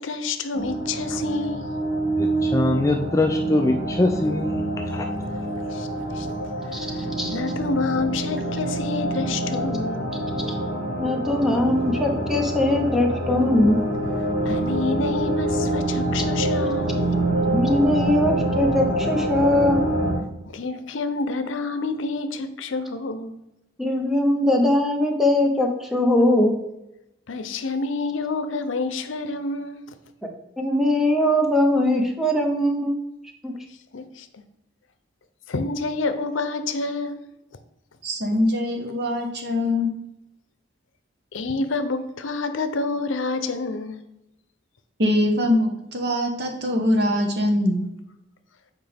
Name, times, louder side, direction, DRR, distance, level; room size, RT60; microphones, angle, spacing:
voice 1, 0.0-1.8 5.6-6.3 6.7-10.1 14.4-17.0 20.5-23.3 27.3-29.8 33.9-34.3 35.5-37.4 41.3-44.0, left 3 dB, 80° left, 0.7 m, -28 dB
sound 1, 0.5-20.2, right 1 dB, 40° right, 1.9 m, -26 dB
voice 2, 2.2-5.1, left 2 dB, 15° left, 0.3 m, -23 dB
voice 3, 11.0-13.8 17.5-19.8 23.8-26.6 30.6-33.0 33.4-33.6, left 1 dB, ahead, 0.9 m, -21 dB
voice 4, 38.0-39.9 45.0-47.9, left 1 dB, 55° right, 1.1 m, -22 dB
8.0 x 4.7 x 3.4 m
head